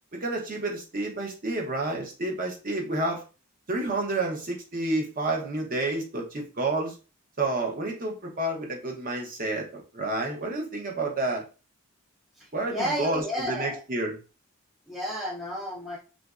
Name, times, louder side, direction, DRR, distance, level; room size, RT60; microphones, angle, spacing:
voice 1, 0.1-3.2 3.7-7.0 7.4-11.4 12.5-14.2, right 2 dB, 40° right, 1 dB, 0.7 m, -30 dB
voice 2, 12.4-13.8 14.9-16.0, equal, ahead, -4 dB, 0.4 m, -32 dB
3.0 x 2.4 x 2.3 m, 0.32 s
head